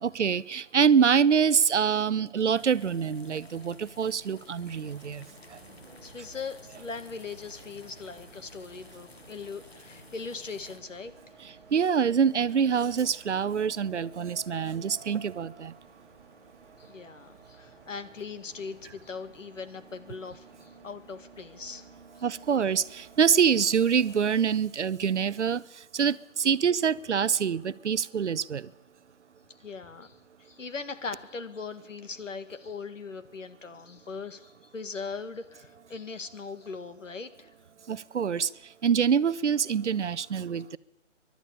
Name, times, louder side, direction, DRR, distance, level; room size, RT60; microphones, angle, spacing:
voice 1, 0.0-5.2 5.5-5.6 11.4-15.7 22.2-25.6 25.9-28.7 37.9-38.5 38.8-40.8, right 7 dB, 65° right, 0.7 m, -25 dB
sound 1, 2.5-10.8, left 3 dB, 55° left, 2.1 m, -53 dB
Bus, 4.7-24.5, right 4 dB, 10° right, 2.5 m, -55 dB
voice 2, 6.0-11.2 11.4-11.6 16.8-21.9 22.2-22.3 29.6-37.5 38.4-38.5, left 4 dB, 80° left, 1.9 m, -40 dB
30.0 x 11.5 x 8.5 m
hypercardioid pair, 180°, 38 cm